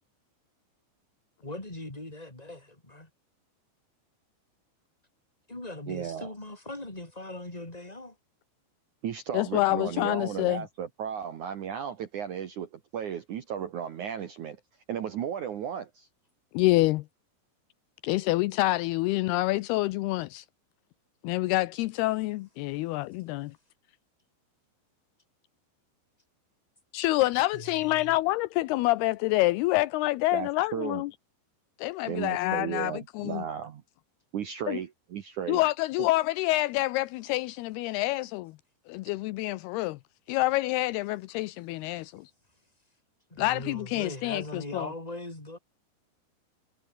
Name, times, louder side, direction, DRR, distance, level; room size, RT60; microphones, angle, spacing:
voice 1, 1.4-3.1 5.5-8.1 27.5-28.1 42.0-42.1 43.3-45.6, left 2 dB, 10° left, 3.3 m, -40 dB
voice 2, 5.9-6.3 9.0-14.6 14.9-16.1 30.3-31.0 32.1-33.8 34.3-35.6, right 9 dB, 65° right, 2.0 m, -35 dB
voice 3, 9.3-10.7 16.5-17.1 18.0-20.5 21.2-23.6 26.9-31.1 31.8-33.4 34.7-34.8 35.5-38.6 38.9-40.0 40.3-42.3 43.4-44.9, left 19 dB, 80° left, 2.3 m, -27 dB
omnidirectional pair, 5.3 m